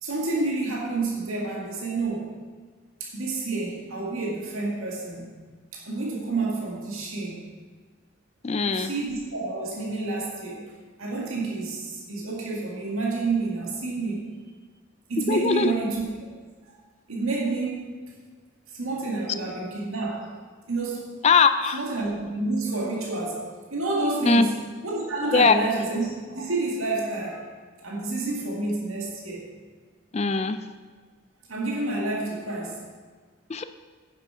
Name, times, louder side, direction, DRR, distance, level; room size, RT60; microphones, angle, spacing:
voice 1, 0.0-2.3 3.0-5.4 5.7-7.4 8.7-10.6 11.0-14.3 15.1-16.0 17.1-17.9 18.7-20.3 20.7-21.1 21.7-23.4 23.7-27.4 27.8-29.4 31.5-32.8, right 3 dB, 85° right, -3 dB, 2.1 m, -29 dB
voice 2, 8.4-8.9 15.2-15.7 21.2-21.8 24.2-24.5 25.3-25.5 30.1-30.6 33.5-33.6, left 5 dB, 30° left, 10 dB, 0.4 m, -21 dB
10.0 x 7.6 x 4.9 m, 1.5 s
head